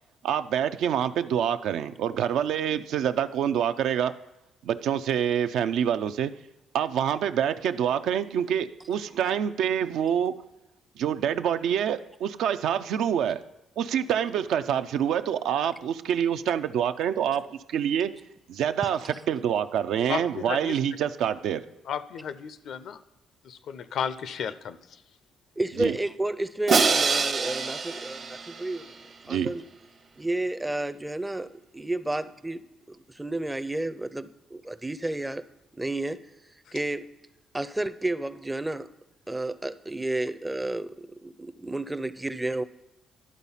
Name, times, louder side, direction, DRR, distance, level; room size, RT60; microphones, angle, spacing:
voice 1, 0.2-4.1 4.6-6.3 6.7-10.4 11.0-13.4 13.8-18.1 18.5-21.6 25.7-26.0 29.3-29.5, right 9 dB, 80° right, 11 dB, 0.4 m, -26 dB
voice 2, 20.1-20.8 21.9-23.0 23.4-24.8, left 7 dB, 70° left, 14 dB, 0.5 m, -33 dB
voice 3, 25.6-28.9 29.3-29.6 30.2-32.6 32.9-35.4 35.8-36.2 36.7-37.1 37.5-38.9 39.3-42.6, right 2 dB, 10° right, 14 dB, 0.4 m, -31 dB
Crash cymbal, 26.7-28.9, right 4 dB, 50° right, 0.8 m, -25 dB
11.0 x 4.1 x 5.5 m, 0.97 s
cardioid pair, 90°, 0 cm